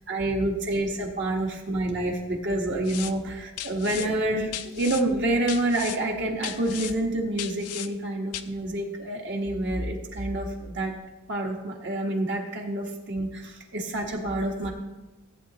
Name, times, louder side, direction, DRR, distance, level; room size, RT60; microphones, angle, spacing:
voice 1, 0.1-10.9 11.3-14.7, right 1 dB, 50° right, 0 dB, 1.5 m, -28 dB
sound 1, 2.8-3.1 3.6-4.1 4.5-5.0 5.5-6.0 6.4-6.9 7.4-7.9 8.3-8.4, left 12 dB, 90° left, 0.5 m, -36 dB
15.5 x 8.4 x 3.0 m, 1.0 s
head